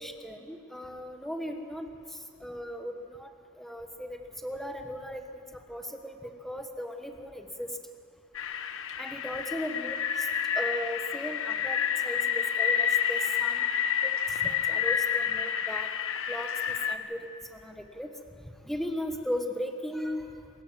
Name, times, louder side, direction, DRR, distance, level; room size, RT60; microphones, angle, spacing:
voice 1, 0.0-1.9 2.4-3.3 3.6-5.4 5.7-7.7 9.0-10.3 10.5-11.8 12.0-13.7 14.0-15.9 16.3-16.5 16.9-18.1 18.6-20.3, equal, ahead, 5 dB, 1.4 m, -37 dB
sound 1, 8.3-16.9, left 8 dB, 65° left, 1.0 m, -29 dB
27.0 x 15.0 x 7.4 m, 2.3 s
head